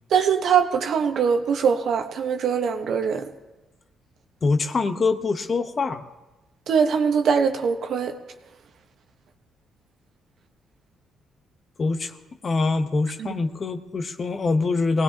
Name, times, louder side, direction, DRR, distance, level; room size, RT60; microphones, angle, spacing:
voice 1, 0.1-3.3 6.7-8.2 13.2-13.4, right 6 dB, 65° right, 6 dB, 1.2 m, -22 dB
voice 2, 4.4-6.0 11.8-12.2 12.4-15.0, left 3 dB, 40° left, 9 dB, 1.0 m, -24 dB
22.0 x 18.0 x 2.9 m, 1.1 s
cardioid pair, 90°, 0 cm